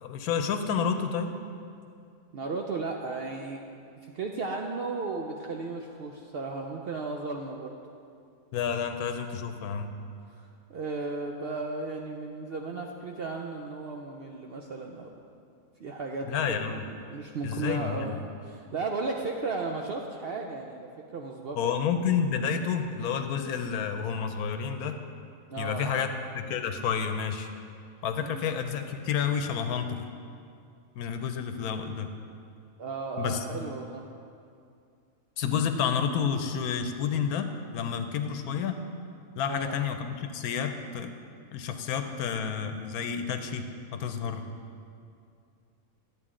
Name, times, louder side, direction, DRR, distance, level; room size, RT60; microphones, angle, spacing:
voice 1, 0.0-1.3 8.5-9.9 16.3-16.8 17.4-18.2 21.6-25.0 25.6-26.1 26.3-27.5 28.0-30.0 30.9-32.1 33.2-33.6 35.4-38.8 39.3-41.1 41.5-43.7 43.9-44.4, left 7 dB, 90° left, 7 dB, 1.1 m, -30 dB
voice 2, 2.3-3.6 4.0-7.8 10.3-15.2 15.8-21.9 25.5-26.1 28.1-28.7 32.8-34.1 39.4-39.8, right 3 dB, 65° right, 1 dB, 0.6 m, -35 dB
10.5 x 8.2 x 3.7 m, 2.4 s
omnidirectional pair, 1.5 m